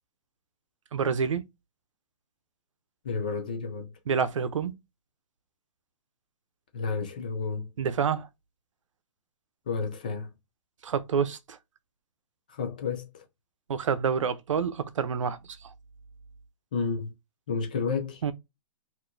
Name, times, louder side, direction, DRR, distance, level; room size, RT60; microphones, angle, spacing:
voice 1, 0.9-1.4 4.1-4.7 7.8-8.3 10.8-11.6 13.7-15.4 18.2-18.3, right 6 dB, 70° right, 0.7 m, -27 dB
voice 2, 3.0-3.9 6.7-7.7 9.7-10.3 12.5-13.2 16.7-17.1 17.5-18.2, left 5 dB, 15° left, 0.3 m, -31 dB
4.8 x 2.7 x 2.6 m
hypercardioid pair, 180°, 17 cm